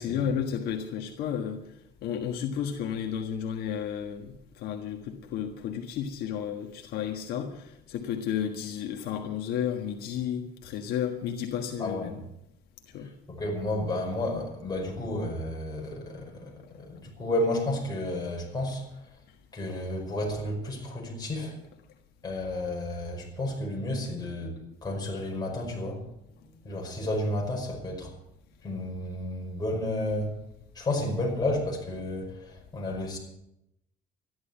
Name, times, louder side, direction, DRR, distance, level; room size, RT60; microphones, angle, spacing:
voice 1, 0.0-12.2 12.9-13.1 19.3-19.4, left 8 dB, 75° left, 1.6 m, -32 dB
voice 2, 11.8-12.1 13.0-19.0 19.5-21.6 22.2-26.0 26.6-28.1 28.6-30.3 30.8-33.2, left 1 dB, 25° left, 5.3 m, -32 dB
13.5 x 11.0 x 8.2 m
cardioid pair, 135°, 16 cm